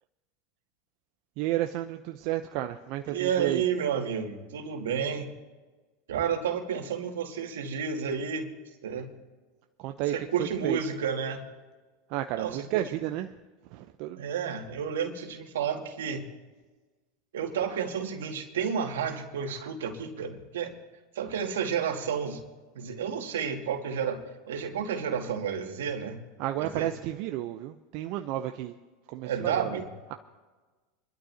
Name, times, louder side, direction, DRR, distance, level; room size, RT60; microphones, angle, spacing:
voice 1, 1.4-3.6 9.8-10.8 12.1-13.3 13.7-14.3 26.4-28.7 29.1-29.7, right 13 dB, 60° right, 6 dB, 0.7 m, -32 dB
voice 2, 3.1-5.3 6.1-8.5 8.8-9.1 10.1-11.5 12.4-13.0 14.2-16.3 17.3-20.8 21.2-22.4 22.7-26.2 26.6-26.9 29.2-29.9, right 7 dB, 85° right, 3 dB, 2.2 m, -31 dB
27.0 x 12.5 x 2.9 m, 1.3 s
hypercardioid pair, 105°, 0 cm